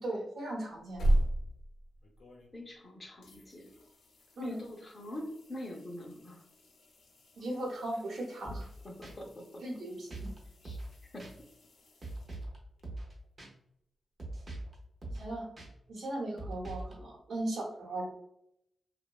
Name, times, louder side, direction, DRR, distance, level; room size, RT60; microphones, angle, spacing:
voice 1, 0.0-1.0 4.4-4.6 7.4-8.6 9.6-10.3 15.1-15.5 15.9-18.1, right 1 dB, 70° right, -3 dB, 0.8 m, -37 dB
sound 1, 0.7-2.8 3.2-12.8 15.6-15.7, right 1 dB, 75° left, 0.5 m, -38 dB
voice 2, 2.5-3.7 4.4-6.4 8.8-9.6 10.6-10.8 11.1-11.3, left 1 dB, 25° left, 1 dB, 0.4 m, -44 dB
sound 2, 8.4-8.7 9.0-9.1 10.1-10.4 10.6-10.9 11.2-11.3 12.0-12.6 12.8-13.1 13.4-13.5 14.2-14.7 15.0-15.3 15.6-15.7 16.4-16.9, right 2 dB, 30° right, 0.5 m, -41 dB
2.6 x 2.1 x 2.2 m, 0.77 s
wide cardioid pair, 170°, 0 cm